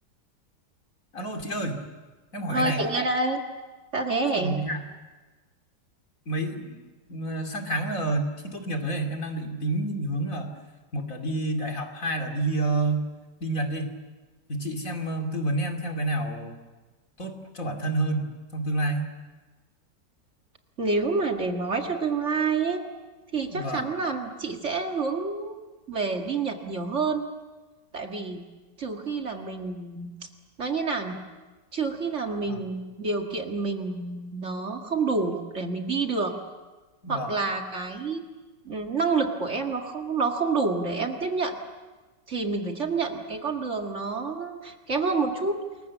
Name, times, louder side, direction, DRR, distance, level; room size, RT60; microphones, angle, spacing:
voice 1, 1.1-1.8 2.3-2.8 4.4-4.8 6.3-10.5 10.9-13.1 13.4-13.9 14.5-16.6 17.2-19.1 23.5-23.9 32.5-32.6 37.0-37.3, right 2 dB, 50° left, 4 dB, 3.0 m, -29 dB
voice 2, 2.5-3.4 3.9-4.5 20.8-22.8 23.3-27.3 27.9-28.4 28.8-30.1 30.6-31.2 31.7-36.3 37.1-38.2 38.7-41.6 42.3-45.6, right 4 dB, 45° right, 3 dB, 2.1 m, -28 dB
28.5 x 22.0 x 7.3 m, 1.3 s
omnidirectional pair, 1.9 m